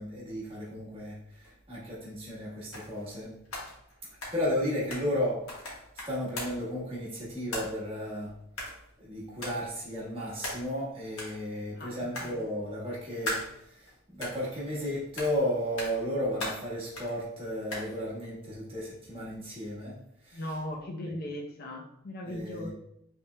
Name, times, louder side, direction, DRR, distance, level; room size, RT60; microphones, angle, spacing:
voice 1, 0.0-3.3 4.3-5.8 6.1-8.3 9.0-20.0 20.2-20.4 22.2-22.7, equal, 25° right, -6 dB, 1.3 m, -34 dB
sound 1, 1.4-1.5 2.7-3.2 3.4-5.2 5.5-6.7 7.5-8.0 8.6-9.0 9.4-9.7 10.4-10.9 11.1-11.4 12.1-12.7 13.2-13.9 14.2-14.8 15.2-15.5 15.8-16.1 16.4-17.2 17.7-18.0, left 1 dB, 80° left, 1.5 m, -39 dB
voice 2, 11.7-12.4 20.3-22.7, left 1 dB, 45° left, 0 dB, 0.6 m, -38 dB
5.5 x 3.4 x 2.2 m, 0.79 s
head